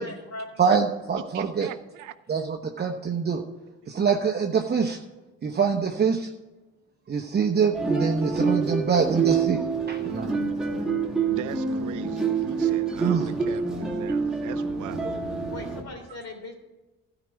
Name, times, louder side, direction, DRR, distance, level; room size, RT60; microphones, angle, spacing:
voice 1, 0.0-0.5 15.5-16.5, left 2 dB, 55° left, 2 dB, 3.4 m, -39 dB
voice 2, 0.6-1.7 2.3-3.4 3.9-5.0 5.4-6.3 7.1-9.6 9.9-10.3 12.9-13.3, right 6 dB, 35° right, 2 dB, 0.9 m, -24 dB
voice 3, 1.3-2.1 11.3-15.1, right 11 dB, 80° right, 12 dB, 0.7 m, -39 dB
sound 1, 7.7-15.8, right 5 dB, ahead, 2.1 m, -27 dB
12.5 x 5.0 x 8.0 m, 1.1 s
cardioid pair, 90°, 30 cm